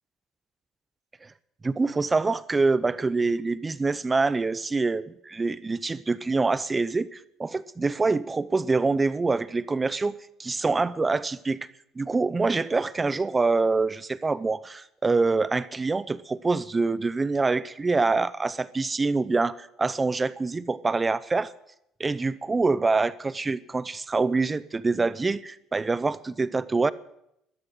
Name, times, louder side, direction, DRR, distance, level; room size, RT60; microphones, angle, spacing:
voice 1, 1.6-11.7 12.0-21.5 22.0-26.9, right 3 dB, 25° right, 0.7 m, -25 dB
13.5 x 12.5 x 7.8 m
supercardioid pair, 75°, 0 cm